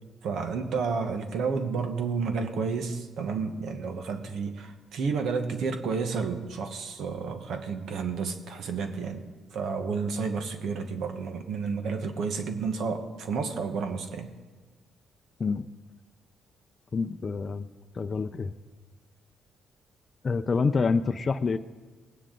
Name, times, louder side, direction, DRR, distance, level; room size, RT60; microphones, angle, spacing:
voice 1, 0.2-9.2 9.5-14.3, right 5 dB, 70° right, 7 dB, 1.1 m, -31 dB
voice 2, 16.9-17.7 17.9-18.5 20.2-21.6, left 4 dB, 35° left, 8 dB, 0.5 m, -27 dB
19.0 x 9.8 x 3.8 m, 1.3 s
cardioid pair, 90°, 0 cm